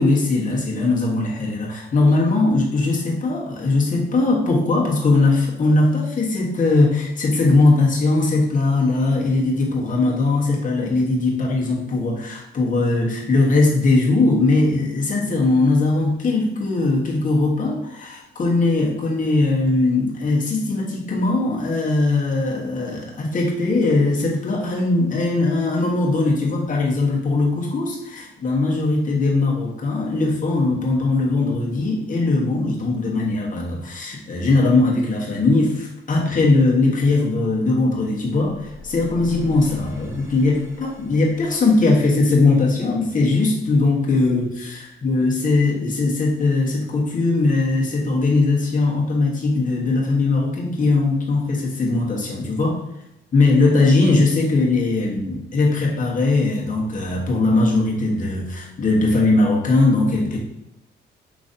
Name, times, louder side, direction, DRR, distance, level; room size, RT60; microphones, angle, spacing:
voice 1, 0.0-52.8 53.3-60.4, left 3 dB, 40° left, -3 dB, 1.3 m, -20 dB
sound 1, 38.3-43.3, left 2 dB, 15° right, 1.0 m, -42 dB
5.0 x 3.1 x 2.7 m, 0.87 s
cardioid pair, 90°, 20 cm